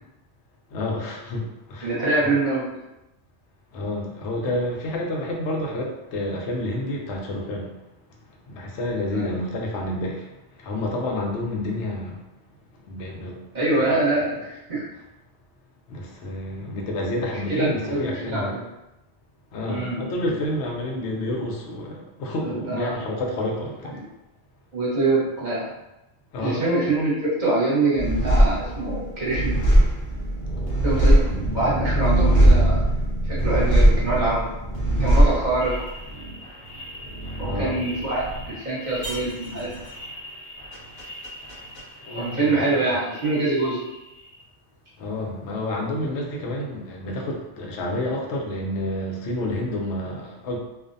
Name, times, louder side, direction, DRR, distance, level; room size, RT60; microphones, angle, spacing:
voice 1, 0.7-2.4 3.7-7.7 8.1-12.2 12.7-13.4 13.7-13.9 15.9-18.6 19.5-24.0 26.3-26.6 31.2-31.4 37.4-37.8 42.0-42.7 45.0-50.6, left 1 dB, 75° left, 0 dB, 0.9 m, -29 dB
voice 2, 1.8-2.8 9.1-9.3 13.5-14.9 17.5-18.6 19.7-20.1 22.4-22.9 24.7-25.7 26.4-29.6 30.8-32.9 33.2-34.5 35.0-35.8 37.4-39.7 42.1-43.9, right 2 dB, 45° right, -8 dB, 1.0 m, -24 dB
sound 1, 28.0-42.9 43.1-43.9, right 1 dB, 50° left, 0.9 m, -22 dB
2.5 x 2.1 x 2.5 m, 0.94 s
omnidirectional pair, 1.2 m